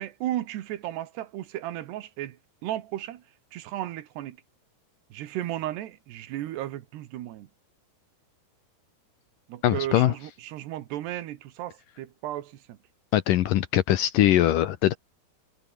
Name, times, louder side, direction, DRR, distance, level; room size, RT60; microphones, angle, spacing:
voice 1, 0.0-3.2 3.5-4.4 5.1-7.5 9.5-12.8, right 13 dB, 80° right, 3.5 m, -34 dB
voice 2, 9.6-10.1 13.1-14.9, left 13 dB, 70° left, 2.2 m, -21 dB
omnidirectional pair, 4.8 m